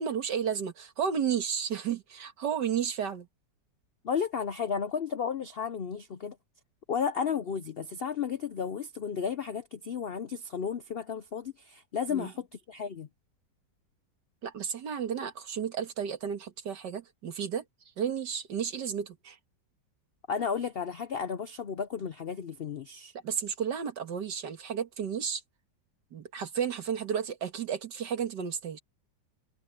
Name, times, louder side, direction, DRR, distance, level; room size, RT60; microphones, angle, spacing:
voice 1, 0.0-3.3 12.1-12.3 14.4-17.6 18.0-19.4 23.2-25.4 26.1-28.8, right 7 dB, 70° right, 2.2 m, -32 dB
voice 2, 4.0-6.4 6.9-13.1 20.3-23.1, left 7 dB, 75° left, 0.5 m, -33 dB
omnidirectional pair, 1.9 m